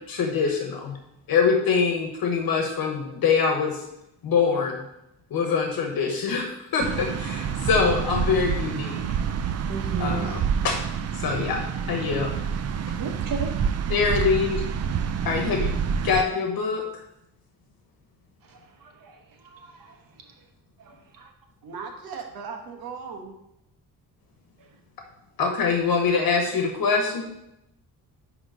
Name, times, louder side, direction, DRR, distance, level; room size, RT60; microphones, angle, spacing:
voice 1, 0.1-1.0 1.3-3.8 4.2-4.8 5.3-9.0 10.0-10.8 11.2-12.4 13.9-14.6 15.2-15.8 16.0-16.8 25.4-27.3, left 5 dB, 75° left, 3 dB, 1.2 m, -24 dB
sound 1, 6.8-16.2, right 7 dB, 45° right, 0.4 m, -28 dB
voice 2, 9.7-10.4 13.0-13.5 18.5-19.2 19.4-20.0 20.8-21.3, right 3 dB, 65° right, 3 dB, 1.1 m, -35 dB
voice 3, 21.6-23.4, right 5 dB, 85° right, 3 dB, 1.4 m, -37 dB
10.0 x 3.6 x 5.0 m, 0.84 s
wide cardioid pair, 150°, 35 cm